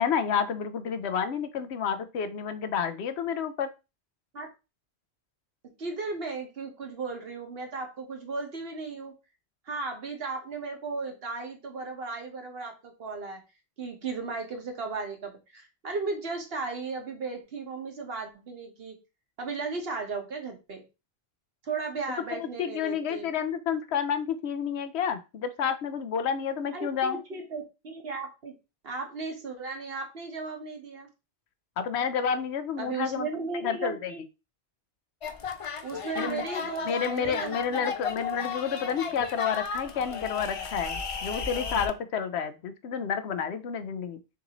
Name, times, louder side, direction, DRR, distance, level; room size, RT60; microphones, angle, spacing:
voice 1, 0.0-3.7 22.3-27.2 31.8-33.3 33.6-34.1 36.2-36.4 36.8-44.2, left 7 dB, 85° left, 10 dB, 0.9 m, -30 dB
voice 2, 5.8-9.1 9.7-13.4 13.8-19.0 19.4-20.8 21.6-23.3 26.7-28.5 28.8-31.1 32.8-34.2 35.8-37.9, right 4 dB, 65° right, 3 dB, 1.3 m, -35 dB
sound 1, 35.2-41.9, left 5 dB, 45° left, 0.5 m, -35 dB
6.4 x 2.7 x 2.9 m, 0.27 s
omnidirectional pair, 1.1 m